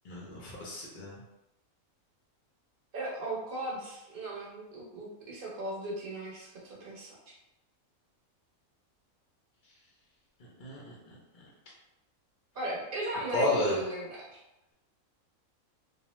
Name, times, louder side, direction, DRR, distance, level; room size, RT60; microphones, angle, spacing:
voice 1, 0.0-1.2 10.6-11.5 13.3-13.8, left 2 dB, 55° left, -5 dB, 0.5 m, -33 dB
voice 2, 2.9-7.3 12.5-14.4, right 2 dB, 45° right, -4 dB, 0.8 m, -36 dB
2.7 x 2.0 x 3.0 m, 0.94 s
omnidirectional pair, 1.5 m